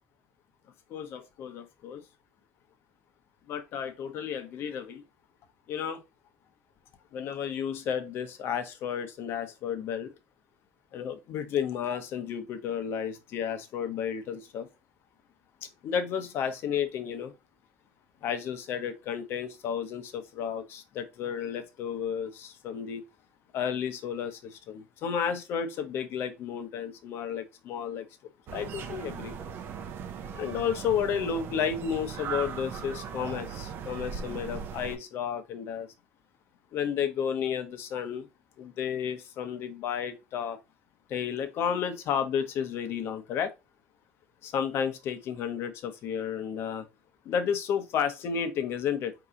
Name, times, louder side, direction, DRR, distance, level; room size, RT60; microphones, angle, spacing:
voice 1, 0.9-2.0 3.5-5.0 5.7-6.0 7.1-10.1 10.9-14.7 15.6-17.3 18.2-23.0 23.5-28.1 28.5-29.4 30.3-35.9 36.7-38.3 38.6-40.6 41.1-43.5 44.4-46.9 47.2-49.1, left 8 dB, 55° left, 0.9 m, -32 dB
sound 1, 28.5-35.0, right 7 dB, 45° right, 0.6 m, -38 dB
4.6 x 2.9 x 3.8 m
cardioid pair, 145°, 5 cm